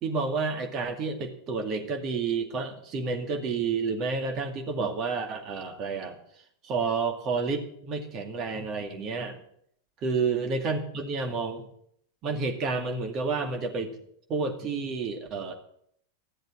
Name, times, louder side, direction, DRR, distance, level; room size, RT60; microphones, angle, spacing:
voice 1, 0.0-6.2 6.6-9.4 10.0-11.7 12.2-14.0 14.3-15.5, right 4 dB, 35° right, 5 dB, 2.3 m, -30 dB
13.5 x 8.0 x 8.6 m, 0.67 s
figure-of-eight pair, 90°, 0 cm